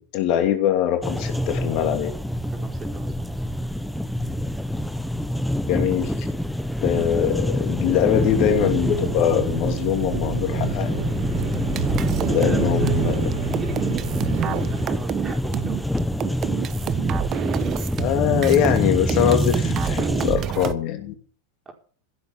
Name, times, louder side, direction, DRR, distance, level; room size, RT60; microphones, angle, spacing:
voice 1, 0.0-2.1 5.7-6.3 6.8-11.0 12.3-13.2 18.0-21.1, left 10 dB, 55° left, 6 dB, 2.7 m, -22 dB
sound 1, 1.0-20.4, equal, 5° left, 1.2 m, -26 dB
voice 2, 2.5-3.3 12.4-15.9 21.6-21.7, right 4 dB, 20° right, 0 dB, 4.8 m, -38 dB
sound 2, 8.3-14.9, right 6 dB, 65° right, 5.2 m, -29 dB
sound 3, 11.4-18.8 19.1-20.7, right 11 dB, 40° right, 1.3 m, -28 dB
16.0 x 7.9 x 7.3 m, 0.43 s
hypercardioid pair, 110°, 0 cm